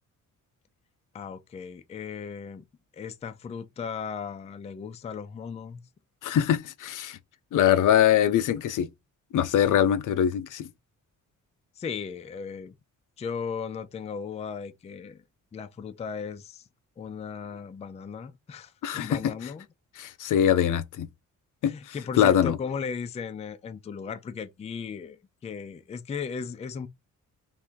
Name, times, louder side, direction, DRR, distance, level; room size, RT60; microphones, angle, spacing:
voice 1, 1.1-2.6 2.9-5.8 11.8-12.8 13.2-15.2 15.5-16.6 17.0-19.7 21.6-26.9, left 6 dB, 20° left, 0.3 m, -36 dB
voice 2, 6.2-7.2 7.5-8.9 9.3-10.7 18.8-19.3 20.0-21.1 21.6-22.6, left 10 dB, 75° left, 0.6 m, -23 dB
3.6 x 2.5 x 4.4 m
wide cardioid pair, 155°, 32 cm